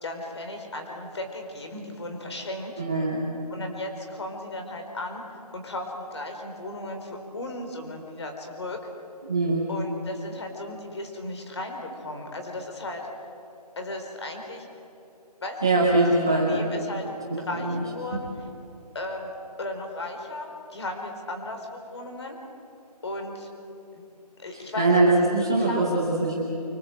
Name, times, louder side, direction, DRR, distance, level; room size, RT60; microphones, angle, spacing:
voice 1, 0.0-2.7 3.5-5.2 5.5-8.8 9.7-13.1 13.8-14.7 15.4-17.1 17.4-18.3 18.9-19.3 19.6-22.4 23.0-23.5 23.9-24.1 24.4-25.1 25.4-25.8, left 2 dB, 40° left, 3 dB, 4.3 m, -35 dB
voice 2, 2.8-3.3 9.3-9.7 15.6-16.6 17.3-17.8 24.5-26.4, right 2 dB, 5° right, -5 dB, 0.5 m, -22 dB
25.5 x 22.0 x 7.8 m, 2.8 s
hypercardioid pair, 175°, 21 cm